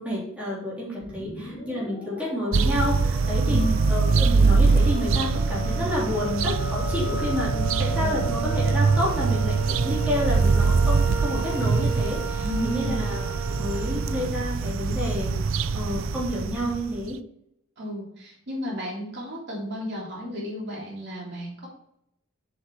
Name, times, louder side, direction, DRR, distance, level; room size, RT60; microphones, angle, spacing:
voice 1, 0.0-3.6 3.9-15.3 15.7-17.2, left 1 dB, 5° right, -8 dB, 3.2 m, -30 dB
sound 1, 1.0-14.2, right 2 dB, 45° left, 3.6 m, -36 dB
sound 2, 2.5-17.1, right 4 dB, 75° right, 0.5 m, -23 dB
voice 2, 3.4-3.8 7.9-8.3 12.4-13.0 17.8-21.7, left 1 dB, 55° right, -4 dB, 3.4 m, -33 dB
7.4 x 6.5 x 4.7 m, 0.74 s
head